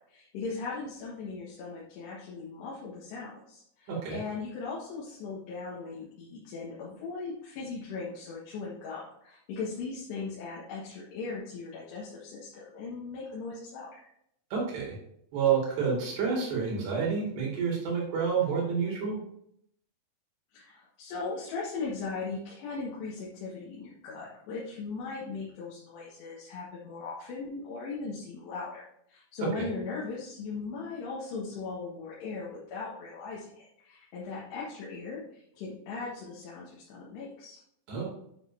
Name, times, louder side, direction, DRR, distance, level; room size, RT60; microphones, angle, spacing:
voice 1, 0.0-14.0 20.5-28.8 29.1-37.6, left 4 dB, 85° left, -6 dB, 3.8 m, -38 dB
voice 2, 3.9-4.2 14.5-15.0 15.3-19.2 29.4-29.7 37.9-38.0, right 6 dB, 80° right, -3 dB, 4.6 m, -29 dB
9.8 x 6.9 x 2.8 m, 0.73 s
omnidirectional pair, 4.8 m